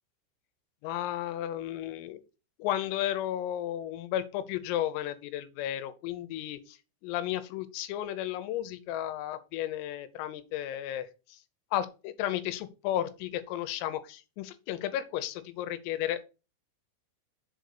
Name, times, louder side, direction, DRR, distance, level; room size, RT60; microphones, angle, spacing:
voice 1, 0.8-2.2 2.6-11.4 11.7-16.2, left 12 dB, 80° left, 12 dB, 3.5 m, -33 dB
7.4 x 5.2 x 6.7 m, 0.32 s
omnidirectional pair, 6.0 m